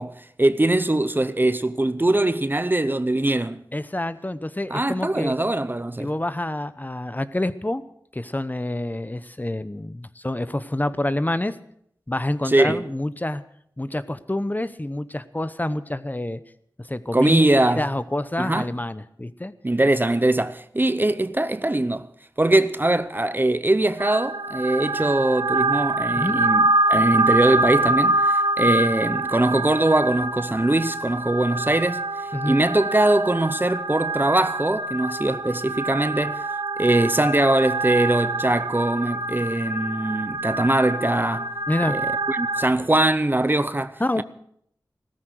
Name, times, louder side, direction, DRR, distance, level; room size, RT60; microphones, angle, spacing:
voice 1, 0.0-3.6 4.7-6.1 12.4-12.8 17.1-17.8 18.4-18.7 19.6-22.1 22.4-32.0 32.5-36.4 36.8-41.5 41.9-44.2, right 1 dB, 25° right, 0.7 m, -22 dB
voice 2, 3.7-5.4 6.0-7.8 8.1-11.6 12.1-13.4 13.8-16.4 16.9-19.5 26.2-26.4 32.3-32.6 41.7-42.0 44.0-44.2, left 1 dB, 25° left, 0.9 m, -27 dB
sound 1, 24.0-42.7, right 2 dB, 85° right, 0.8 m, -25 dB
16.0 x 14.0 x 6.4 m
wide cardioid pair, 50°, 7 cm